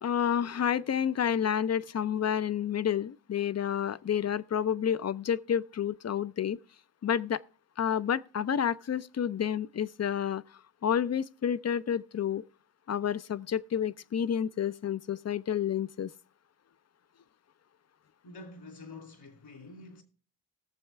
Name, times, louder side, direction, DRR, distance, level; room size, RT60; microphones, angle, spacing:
voice 1, 0.0-6.6 7.0-7.4 7.8-10.4 10.8-12.4 12.9-16.1, left 8 dB, 40° left, 0.5 m, -29 dB
voice 2, 18.2-20.0, left 2 dB, 70° left, 2.9 m, -47 dB
17.5 x 7.1 x 3.4 m
cardioid pair, 60°, 41 cm